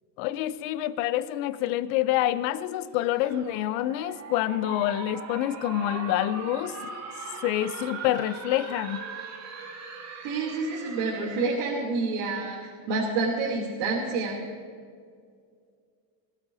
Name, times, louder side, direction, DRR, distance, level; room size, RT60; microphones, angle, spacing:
voice 1, 0.2-6.8 7.4-9.0, left 13 dB, 60° left, 14 dB, 0.9 m, -27 dB
sound 1, 3.0-11.8, right 5 dB, 30° right, 2.0 m, -40 dB
voice 2, 10.2-14.4, right 3 dB, 65° right, -4 dB, 3.3 m, -28 dB
21.0 x 13.5 x 2.8 m, 2.1 s
supercardioid pair, 115°, 50 cm